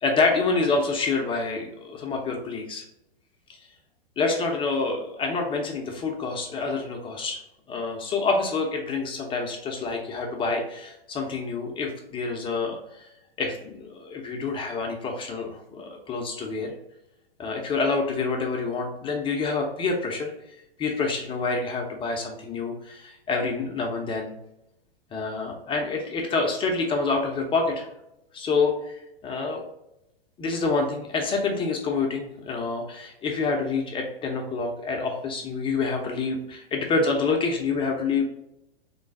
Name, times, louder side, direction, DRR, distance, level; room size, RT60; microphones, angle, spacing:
voice 1, 0.0-2.8 4.2-7.4 7.7-13.1 13.4-16.7 17.4-20.3 20.8-24.3 25.1-27.9 28.3-29.6 30.4-38.2, left 4 dB, 15° left, 2 dB, 0.6 m, -27 dB
3.8 x 3.2 x 3.6 m, 0.87 s
figure-of-eight pair, 105°, 30 cm